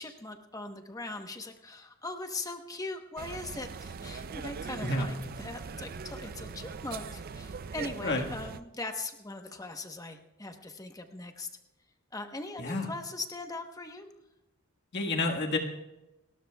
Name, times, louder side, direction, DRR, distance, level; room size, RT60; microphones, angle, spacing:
voice 1, 0.0-11.5 12.1-14.1, left 2 dB, 15° left, 5 dB, 1.0 m, -40 dB
sound 1, 3.2-8.6, right 5 dB, 45° right, 0.4 m, -41 dB
voice 2, 14.9-15.6, left 2 dB, 55° left, 2 dB, 1.6 m, -29 dB
29.5 x 12.5 x 2.3 m, 0.99 s
head